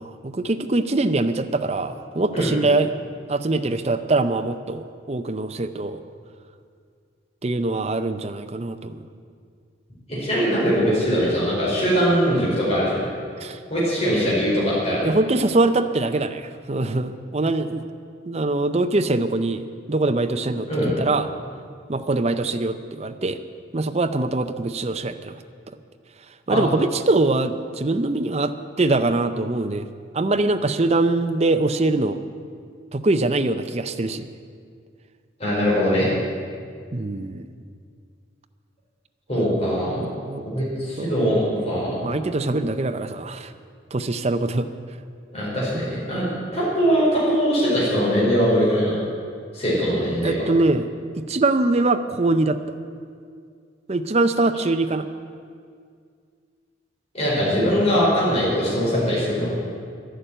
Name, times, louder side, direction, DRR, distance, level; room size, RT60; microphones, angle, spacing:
voice 1, 0.0-2.9 3.3-6.0 7.4-9.0 13.4-13.6 15.0-17.8 18.3-21.3 21.9-23.4 23.7-25.3 26.5-29.9 30.1-32.2 32.9-34.3 36.9-37.5 40.0-40.5 41.0-41.2 42.0-43.5 43.9-44.7 50.2-50.9 51.1-52.6 53.9-55.1, right 2 dB, 35° right, 8 dB, 0.6 m, -23 dB
voice 2, 10.1-13.0 13.7-15.1 20.7-20.9 26.5-26.6 35.4-36.1 39.3-40.0 40.4-42.0 45.3-46.3 46.5-48.9 49.5-50.4 57.1-59.6, equal, 35° left, -7 dB, 4.9 m, -21 dB
11.5 x 11.5 x 9.1 m, 2.2 s
head